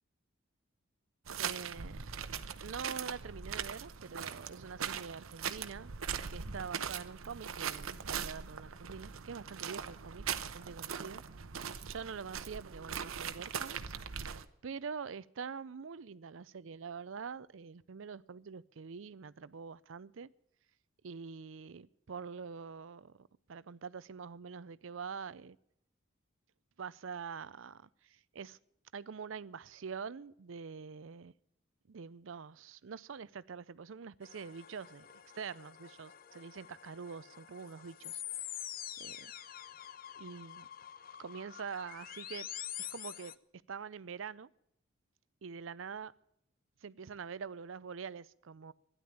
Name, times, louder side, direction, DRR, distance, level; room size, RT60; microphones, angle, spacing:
sound 1, 1.3-14.4, right 7 dB, 85° right, 0.8 m, -41 dB
voice 1, 1.4-2.0 2.6-5.9 6.3-10.2 10.5-11.2 11.9-14.0 14.6-20.3 21.0-25.6 26.8-28.6 28.9-31.3 31.9-35.1 35.3-38.2 38.5-38.6 39.0-39.3 40.1-40.7 41.2-42.5 42.9-44.5 45.4-46.1 46.8-48.7, right 6 dB, 70° right, 0.5 m, -45 dB
sound 2, 34.2-43.4, left 11 dB, 45° left, 0.5 m, -46 dB
13.0 x 10.5 x 9.0 m
head